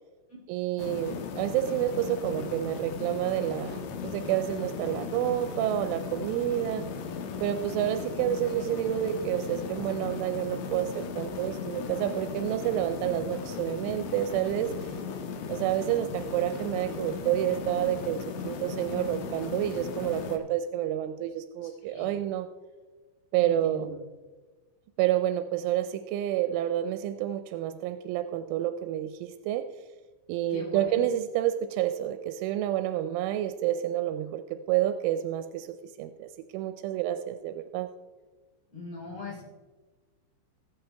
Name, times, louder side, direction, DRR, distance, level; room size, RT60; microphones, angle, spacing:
voice 1, 0.5-6.8 7.4-15.0 15.5-22.5 23.3-23.9 25.0-29.6 30.3-37.9, right 12 dB, 90° right, 9 dB, 3.1 m, -29 dB
sound 1, 0.8-20.4, left 5 dB, 85° left, 3.7 m, -37 dB
voice 2, 23.4-24.0 30.5-31.1 38.7-39.4, left 3 dB, 35° left, -5 dB, 4.8 m, -40 dB
19.5 x 8.6 x 3.4 m, 1.3 s
omnidirectional pair, 5.4 m